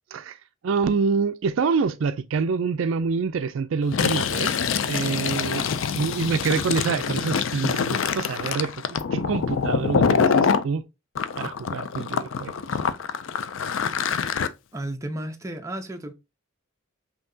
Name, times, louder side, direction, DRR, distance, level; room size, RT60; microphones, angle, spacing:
voice 1, 0.6-4.6 4.9-5.7 5.9-8.7 9.1-10.8 11.4-12.5, right 5 dB, 65° right, 0.4 m, -26 dB
Fill (with liquid), 3.8-10.6 11.2-14.5, left 6 dB, 65° left, 0.4 m, -25 dB
voice 2, 14.7-16.1, right 1 dB, 15° right, 0.5 m, -33 dB
5.6 x 2.8 x 2.7 m
head